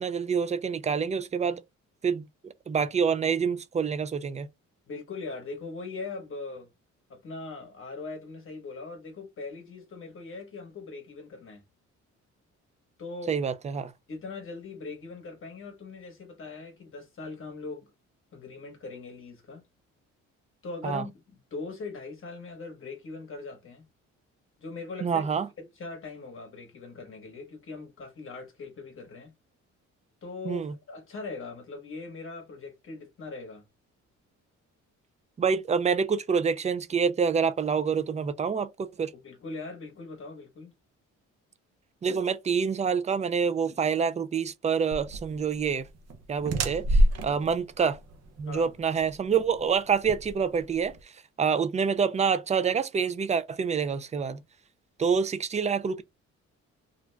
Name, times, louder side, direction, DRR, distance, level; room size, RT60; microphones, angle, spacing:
voice 1, 0.0-1.6 2.0-2.3 2.7-4.5 13.3-13.9 20.8-21.0 25.0-25.5 30.4-30.7 35.4-39.1 42.0-45.9 46.3-48.0 48.4-50.9 51.4-54.4 55.0-56.0, right 6 dB, 25° right, 0.3 m, -27 dB
voice 2, 4.9-6.7 7.1-11.6 13.0-13.4 14.1-17.9 18.3-19.6 20.6-21.1 21.5-23.9 24.6-29.3 30.2-33.6 39.1-40.7 48.4-48.7, left 3 dB, 45° left, 0.9 m, -40 dB
sound 1, 44.9-51.0, equal, 60° right, 0.7 m, -29 dB
2.5 x 2.1 x 3.1 m
cardioid pair, 90°, 30 cm